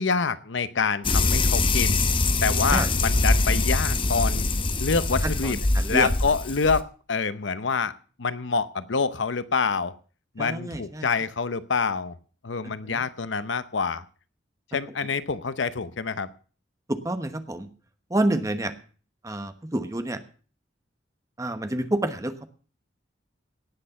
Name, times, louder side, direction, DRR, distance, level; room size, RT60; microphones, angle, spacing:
voice 1, 0.0-2.0 2.4-4.5 4.8-5.6 5.9-7.9 8.2-9.9 10.3-12.2 12.4-14.0 14.7-16.3, left 5 dB, 85° left, 14 dB, 0.8 m, -26 dB
sound 1, 1.0-6.8, left 2 dB, 30° left, 0.8 m, -23 dB
voice 2, 5.2-6.1 10.4-11.1 12.6-13.0 16.9-17.7 18.1-18.7 19.2-20.2 21.4-22.5, right 1 dB, 20° right, 9 dB, 1.1 m, -28 dB
18.0 x 6.4 x 6.9 m, 0.41 s
head